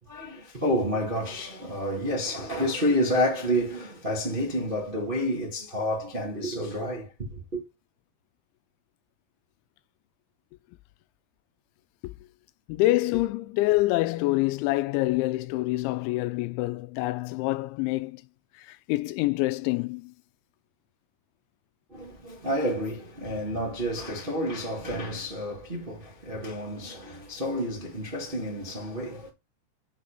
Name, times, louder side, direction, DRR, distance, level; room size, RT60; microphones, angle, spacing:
voice 1, 0.0-7.6 21.9-29.3, equal, 60° right, 0.5 m, -29 dB
voice 2, 12.7-18.2 18.6-20.1, left 18 dB, 90° left, 3.0 m, -26 dB
7.5 x 4.5 x 5.2 m
omnidirectional pair, 5.3 m